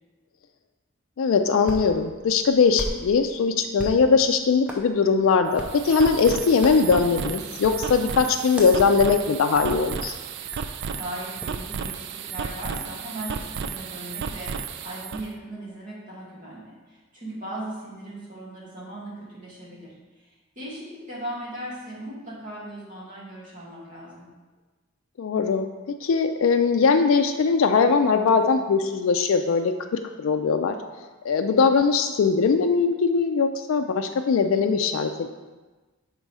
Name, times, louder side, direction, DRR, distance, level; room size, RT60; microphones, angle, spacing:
voice 1, 1.2-10.2 25.2-25.7 26.0-29.7 30.2-30.7 31.2-35.3, left 5 dB, 70° left, 5 dB, 0.4 m, -21 dB
Hands, 1.3-11.6, equal, 5° right, 0.6 m, -41 dB
sound 1, 5.5-15.3, right 6 dB, 55° right, 0.3 m, -33 dB
voice 2, 10.9-24.3, right 1 dB, 40° right, -7 dB, 2.0 m, -38 dB
5.4 x 3.7 x 4.7 m, 1.2 s
head